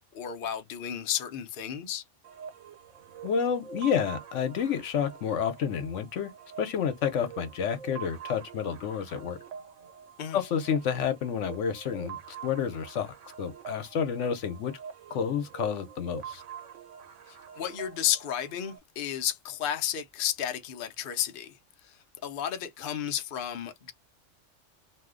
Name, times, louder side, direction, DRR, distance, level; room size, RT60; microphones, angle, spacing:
voice 1, 0.1-2.0 10.2-10.4 17.3-21.6 21.8-23.9, left 10 dB, 55° left, 0.7 m, -32 dB
sound 1, 2.2-18.8, right 7 dB, 85° right, 1.1 m, -46 dB
voice 2, 3.2-6.3 6.6-9.4 10.3-14.7 15.1-16.4, left 7 dB, 80° left, 1.1 m, -30 dB
2.6 x 2.1 x 3.6 m
omnidirectional pair, 1.2 m